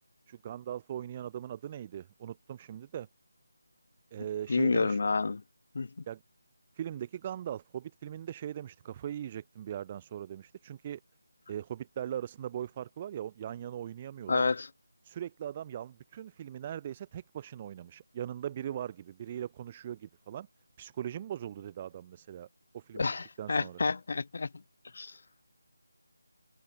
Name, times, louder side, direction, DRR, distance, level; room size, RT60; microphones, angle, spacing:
voice 1, 0.3-3.1 4.1-5.0 6.1-6.2 6.8-11.0 11.5-14.4 15.0-20.5 20.8-22.5 22.7-23.1 23.4-23.8, right 10 dB, 25° right, 7.2 m, -40 dB
voice 2, 4.5-5.4 5.7-5.9 14.3-14.7 22.9-24.5 24.9-25.1, left 4 dB, 50° left, 3.0 m, -29 dB
figure-of-eight pair, 160°, 0 cm